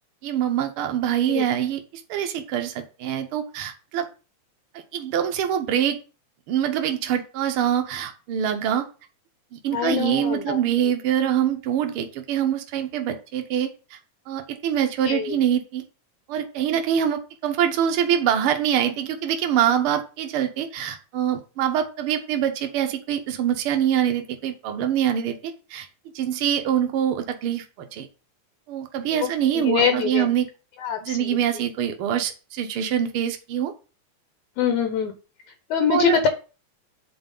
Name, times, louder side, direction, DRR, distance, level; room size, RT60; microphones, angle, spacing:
voice 1, 0.2-4.1 4.7-6.0 6.5-8.9 9.5-14.0 14.3-15.8 16.3-25.9 26.1-28.1 28.7-30.5 31.0-33.7 35.9-36.3, right 9 dB, 85° right, 6 dB, 1.2 m, -24 dB
voice 2, 9.7-10.6 15.0-15.4 29.1-30.3 30.8-31.4 34.6-35.1 35.7-36.3, left 7 dB, 75° left, 6 dB, 2.2 m, -24 dB
8.1 x 4.5 x 5.3 m, 0.34 s
omnidirectional pair, 3.6 m